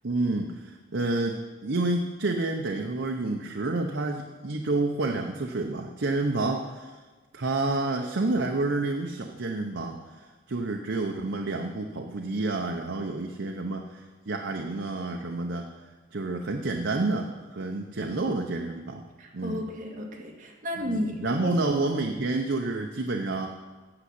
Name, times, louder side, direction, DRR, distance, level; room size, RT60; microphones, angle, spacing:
voice 1, 0.0-6.9 7.3-15.7 16.1-19.0 19.3-19.6 20.9-23.5, right 2 dB, 70° right, 2 dB, 0.7 m, -29 dB
voice 2, 19.2-21.5, left 1 dB, 40° right, -1 dB, 1.8 m, -33 dB
8.8 x 7.0 x 8.1 m, 1.3 s
head